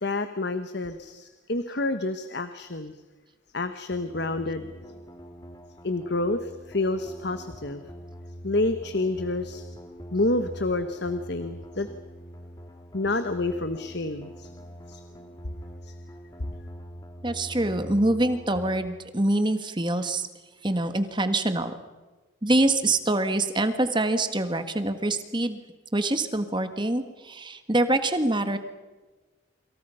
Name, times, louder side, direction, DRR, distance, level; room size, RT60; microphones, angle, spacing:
voice 1, 0.0-2.9 3.5-4.9 5.8-7.8 8.4-9.6 10.1-11.9 12.9-14.5 14.9-15.0 15.8-15.9, left 2 dB, 55° left, 9 dB, 1.2 m, -29 dB
sound 1, 3.9-18.9, equal, 20° left, 1.9 m, -43 dB
voice 2, 17.2-20.3 20.6-21.7 22.4-25.6 25.9-28.6, right 2 dB, 25° right, 9 dB, 1.6 m, -25 dB
27.5 x 26.5 x 5.7 m, 1.3 s
head